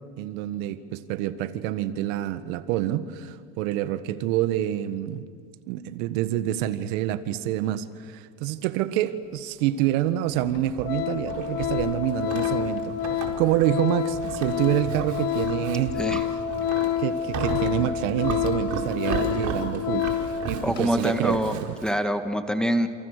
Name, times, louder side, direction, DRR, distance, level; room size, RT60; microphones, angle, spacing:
voice 1, 0.2-5.2 5.7-16.0 16.8-20.1 20.5-21.7, right 13 dB, 70° right, 12 dB, 1.6 m, -27 dB
Organ, 9.8-9.9 10.4-10.6 10.8-20.4 20.7-20.9, left 10 dB, 55° left, 2.6 m, -28 dB
Livestock farm animals working animals, 10.3-22.0, right 6 dB, 40° right, 4.6 m, -36 dB
voice 2, 20.6-22.9, equal, ahead, 6 dB, 1.5 m, -25 dB
29.0 x 29.0 x 6.7 m, 2.1 s
supercardioid pair, 125°, 42 cm